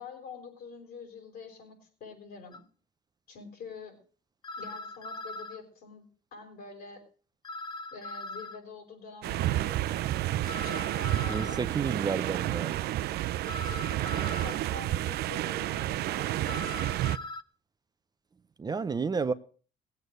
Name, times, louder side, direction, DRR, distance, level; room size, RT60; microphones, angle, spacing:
voice 1, 0.0-2.6 3.3-4.0 4.6-7.0 7.9-10.1 10.6-11.6 13.7-16.7, left 5 dB, 65° left, 5.7 m, -46 dB
sound 1, 2.5-2.6 4.4-5.6 7.4-8.6 10.4-11.6 13.4-14.6 16.4-17.4, left 2 dB, 25° left, 0.6 m, -40 dB
sound 2, 9.2-17.2, right 14 dB, 70° right, 0.6 m, -30 dB
voice 2, 11.3-12.8 18.6-19.3, right 5 dB, 25° right, 0.6 m, -31 dB
18.0 x 8.2 x 6.4 m
cardioid pair, 110°, 17 cm